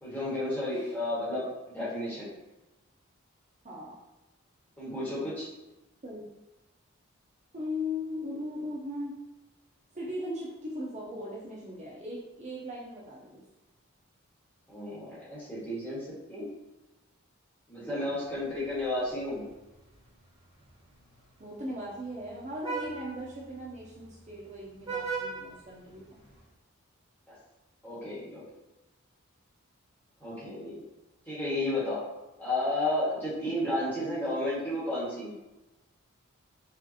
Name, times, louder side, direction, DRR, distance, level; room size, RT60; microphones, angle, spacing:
voice 1, 0.0-1.4 1.7-2.3 4.8-5.5 14.7-16.5 17.7-19.4 27.3-27.4 27.8-28.4 30.2-30.8 31.3-32.0 32.4-35.4, left 1 dB, 10° left, -10 dB, 1.3 m, -32 dB
voice 2, 3.6-4.0 6.0-6.2 7.5-9.2 9.9-13.4 17.8-18.2 21.4-26.2 30.7-30.8, left 1 dB, 35° right, -5 dB, 0.5 m, -38 dB
Vehicle horn car horn honking, 18.4-26.5, right 5 dB, 15° right, 0.9 m, -42 dB
4.9 x 2.4 x 2.8 m, 1.0 s
head